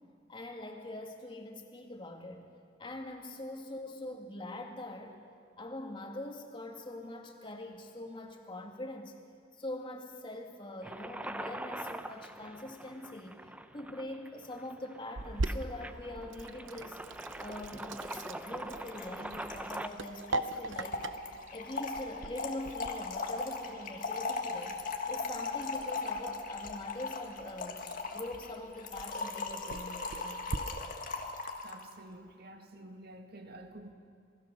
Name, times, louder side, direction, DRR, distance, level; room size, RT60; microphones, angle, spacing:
voice 1, 0.3-2.5 2.8-5.1 5.6-9.2 9.5-17.0 17.4-21.0 21.5-24.8 25.1-27.9 28.1-30.7, left 1 dB, 25° left, 3 dB, 2.3 m, -43 dB
sound 1, 10.8-19.9, right 1 dB, 10° right, 0.6 m, -44 dB
Sink (filling or washing), 15.2-30.6, right 2 dB, 85° right, 0.8 m, -42 dB
Trickle dribble / Fill (with liquid), 18.1-18.2 18.4-18.5 18.7-31.8, left 3 dB, 45° left, 1.8 m, -38 dB
voice 2, 31.6-33.9, right 1 dB, 55° right, 5 dB, 2.0 m, -49 dB
27.5 x 20.5 x 6.8 m, 2.3 s
head